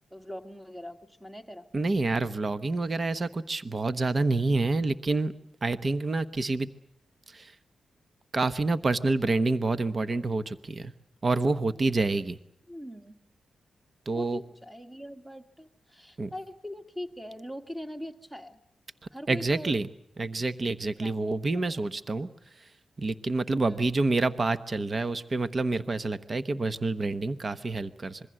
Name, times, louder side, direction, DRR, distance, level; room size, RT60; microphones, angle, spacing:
voice 1, 0.1-1.7 12.7-13.2 14.1-18.6 19.1-19.7 20.9-21.8 23.6-23.9, equal, 5° right, 7 dB, 1.9 m, -42 dB
voice 2, 1.7-5.3 5.6-6.7 7.3-7.5 8.3-10.9 11.2-12.4 14.1-14.4 16.2-16.3 19.3-19.9 20.2-22.3 23.0-28.2, right 3 dB, 35° right, 12 dB, 1.0 m, -27 dB
26.5 x 22.5 x 7.6 m, 0.70 s
wide cardioid pair, 125°, 0 cm